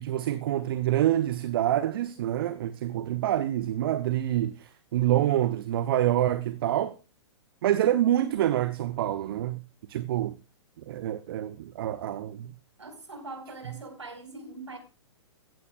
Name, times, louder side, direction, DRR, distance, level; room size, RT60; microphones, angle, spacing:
voice 1, 0.0-7.0 7.6-9.6 9.9-10.4 10.9-12.5, right 12 dB, 55° right, 0.9 m, -26 dB
voice 2, 12.8-14.8, right 2 dB, 80° right, 4.9 m, -42 dB
15.5 x 15.5 x 2.4 m
figure-of-eight pair, 110°, 15 cm